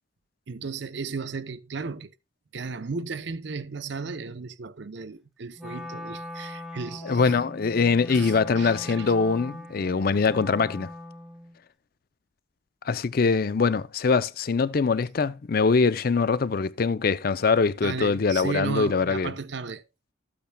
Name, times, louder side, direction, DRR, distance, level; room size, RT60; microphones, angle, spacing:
voice 1, 0.5-2.1 2.5-7.3 8.1-9.1 17.8-19.8, right 4 dB, 60° right, 0.6 m, -35 dB
Wind instrument woodwind instrument, 5.6-11.6, left 1 dB, ahead, 0.9 m, -41 dB
voice 2, 7.0-10.9 12.8-19.3, left 4 dB, 45° left, 0.4 m, -23 dB
13.5 x 8.6 x 2.2 m
head